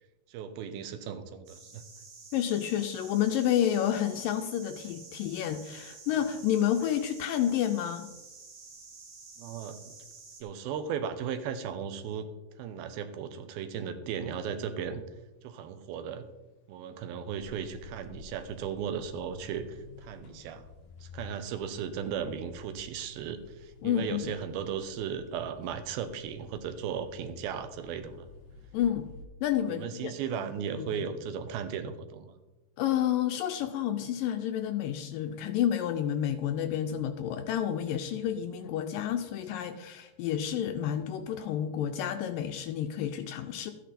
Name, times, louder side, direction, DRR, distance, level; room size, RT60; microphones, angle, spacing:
voice 1, 0.3-1.8 9.4-9.8 10.4-12.3 12.6-15.0 15.4-16.3 16.7-20.6 21.0-28.3 29.7-32.3, right 7 dB, 80° right, 9 dB, 2.8 m, -36 dB
sound 1, 1.5-10.4, right 4 dB, 65° right, 4.2 m, -50 dB
voice 2, 2.3-8.2 23.8-24.3 28.7-29.1 29.4-30.1 30.7-31.0 32.8-43.7, left 10 dB, 80° left, 7 dB, 2.1 m, -30 dB
sound 2, 17.4-29.3, left 4 dB, 65° left, 2.3 m, -52 dB
13.5 x 10.0 x 4.2 m, 1.1 s
omnidirectional pair, 4.4 m